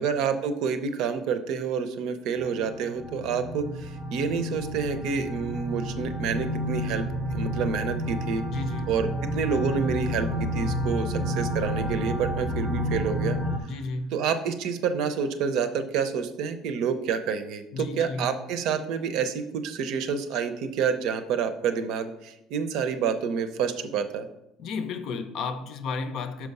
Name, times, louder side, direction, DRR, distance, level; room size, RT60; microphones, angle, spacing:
voice 1, 0.0-8.4 8.9-13.4 14.1-24.3, right 6 dB, 60° right, 0.6 m, -28 dB
sound 1, 2.4-13.6, equal, 10° right, 0.7 m, -30 dB
voice 2, 8.5-9.0 13.6-14.1 17.7-18.3 24.6-26.5, left 4 dB, 50° left, 0.6 m, -33 dB
6.0 x 4.7 x 5.3 m
cardioid pair, 170°, 0 cm